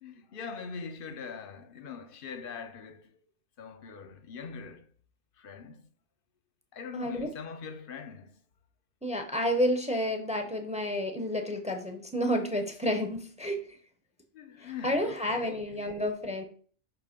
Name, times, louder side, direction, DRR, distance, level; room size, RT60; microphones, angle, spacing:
voice 1, 0.0-3.1 3.6-4.9 5.4-5.8 6.7-8.4 14.3-15.6, left 6 dB, 55° left, 0.9 m, -42 dB
voice 2, 6.9-7.3 9.0-13.6 14.6-16.4, equal, 5° right, 0.8 m, -30 dB
6.1 x 3.2 x 5.0 m
omnidirectional pair, 1.2 m